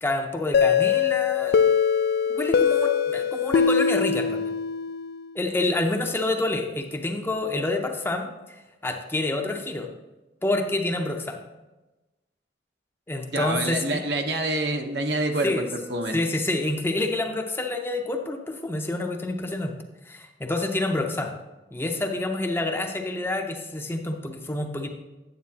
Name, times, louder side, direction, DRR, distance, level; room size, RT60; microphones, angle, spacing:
voice 1, 0.0-1.7 2.3-4.5 5.3-9.9 10.4-11.4 13.1-14.0 15.4-15.7 16.1-19.7 20.0-21.3 21.7-24.9, left 2 dB, 15° left, 4 dB, 0.6 m, -28 dB
sound 1, 0.5-5.2, left 7 dB, 60° left, 0.3 m, -22 dB
voice 2, 13.3-16.2, right 2 dB, 70° right, 4 dB, 0.9 m, -27 dB
9.4 x 8.1 x 2.8 m, 1.1 s
head